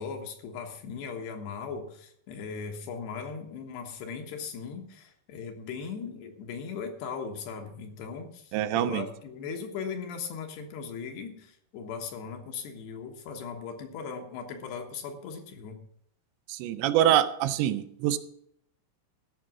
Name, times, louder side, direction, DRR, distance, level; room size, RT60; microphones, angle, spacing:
voice 1, 0.0-15.8, left 5 dB, 75° left, 4 dB, 3.3 m, -38 dB
voice 2, 8.5-9.1 16.5-18.2, right 12 dB, 85° right, 11 dB, 2.9 m, -25 dB
14.0 x 6.0 x 7.3 m, 0.70 s
omnidirectional pair, 5.2 m